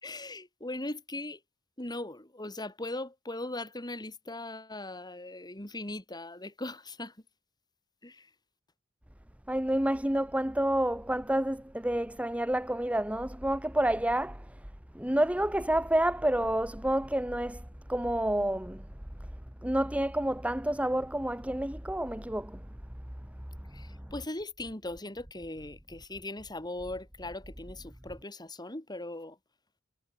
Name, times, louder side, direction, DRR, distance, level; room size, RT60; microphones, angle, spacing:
voice 1, 0.0-1.4 1.8-7.2 8.0-8.3 23.7-29.4, left 2 dB, 20° left, 3.6 m, -39 dB
voice 2, 9.5-14.6 14.9-18.9 19.6-22.6 23.7-23.8, right 1 dB, 5° right, 1.3 m, -29 dB
head